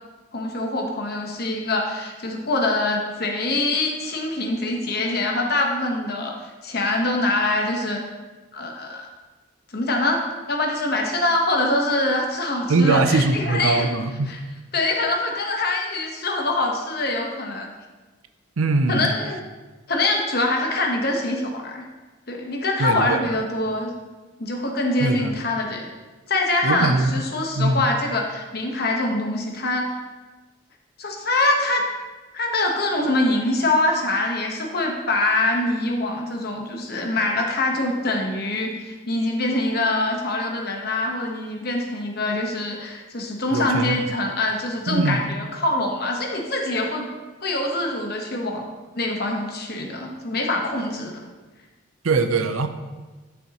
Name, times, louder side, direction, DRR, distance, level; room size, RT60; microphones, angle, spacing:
voice 1, 0.3-6.3 6.6-8.0 8.5-9.1 9.7-10.2 10.5-13.9 14.3-14.4 14.7-17.7 18.9-19.4 19.9-21.8 22.3-23.9 24.4-25.9 26.3-30.0 31.0-31.8 32.3-47.1 47.4-48.6 48.9-51.2, left 2 dB, 50° left, 1 dB, 1.2 m, -24 dB
voice 2, 12.7-14.3 18.6-19.1 22.8-23.3 25.0-25.3 26.6-27.2 27.6-27.9 43.5-44.0 44.9-45.2 52.0-52.7, right 3 dB, 85° right, 9 dB, 0.6 m, -21 dB
9.6 x 7.1 x 3.0 m, 1.2 s
head